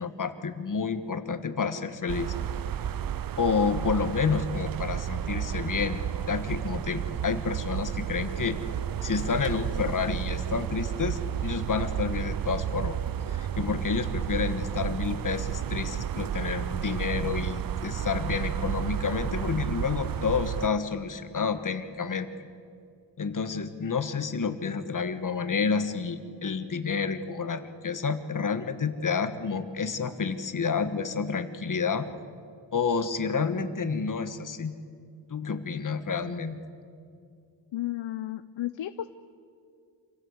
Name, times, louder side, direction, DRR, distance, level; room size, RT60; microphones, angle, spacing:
voice 1, 0.0-2.3 3.4-6.0 6.3-8.6 9.0-13.0 13.3-22.3 23.2-32.1 32.7-34.7 35.3-36.6, left 5 dB, 45° left, 10 dB, 1.4 m, -29 dB
sound 1, 2.1-20.7, right 10 dB, 50° right, 0.5 m, -32 dB
voice 2, 37.7-39.1, left 13 dB, 90° left, 11 dB, 0.7 m, -33 dB
27.0 x 16.5 x 8.1 m, 2.3 s
wide cardioid pair, 155°, 44 cm